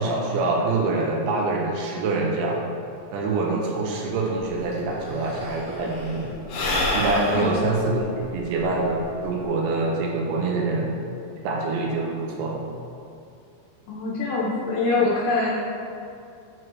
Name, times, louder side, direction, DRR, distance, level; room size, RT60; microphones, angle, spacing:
voice 1, 0.0-2.6 3.1-6.3 6.9-8.1 8.3-10.9 11.4-12.6, right 3 dB, 80° right, -1 dB, 2.8 m, -25 dB
Sigh / Breathing, 4.4-4.5 4.7-9.4, left 1 dB, 60° left, 2.4 m, -29 dB
voice 2, 13.9-15.5, left 3 dB, 80° left, -5 dB, 2.5 m, -24 dB
7.8 x 4.5 x 3.0 m, 2.5 s
omnidirectional pair, 5.3 m